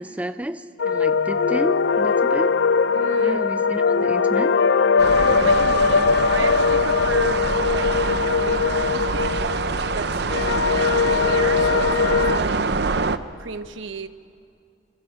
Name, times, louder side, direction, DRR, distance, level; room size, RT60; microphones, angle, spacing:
voice 1, 0.0-2.5 3.2-4.5 10.4-10.9, right 1 dB, 5° right, 11 dB, 0.5 m, -32 dB
sound 1, 0.8-12.4, left 5 dB, 70° left, 0.5 m, -20 dB
sound 2, 0.9-9.5, right 1 dB, 45° left, 6.2 m, -41 dB
voice 2, 2.9-3.5 5.2-9.5 9.9-10.5 10.8-12.6 13.4-14.1, right 3 dB, 90° right, 11 dB, 1.0 m, -34 dB
sound 3, 5.0-13.2, right 4 dB, 60° right, 0.7 m, -25 dB
27.5 x 25.5 x 5.8 m, 2.4 s
head